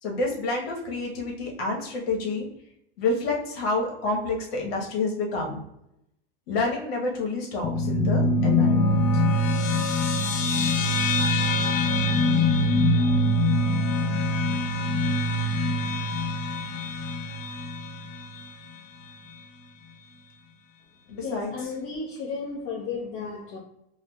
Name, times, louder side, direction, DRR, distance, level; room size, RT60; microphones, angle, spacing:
voice 1, 0.0-2.5 3.0-5.6 6.5-9.2 21.1-21.5, left 2 dB, 85° left, 1.3 m, -28 dB
sound 1, 7.6-18.4, left 2 dB, 25° left, 0.4 m, -24 dB
voice 2, 21.2-23.6, left 4 dB, 50° left, 0.9 m, -33 dB
4.7 x 2.2 x 2.3 m
supercardioid pair, 125°, 30 cm